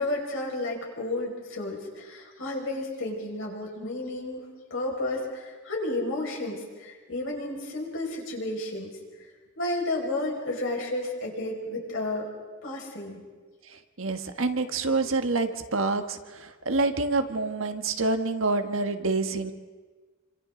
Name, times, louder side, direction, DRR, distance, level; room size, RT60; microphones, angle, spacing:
voice 1, 0.0-4.5 4.7-8.9 9.6-12.3 12.6-13.2, left 2 dB, 70° left, -1 dB, 5.9 m, -32 dB
voice 2, 13.7-19.5, right 3 dB, 70° right, 7 dB, 1.5 m, -27 dB
29.0 x 26.0 x 3.9 m, 1.4 s
head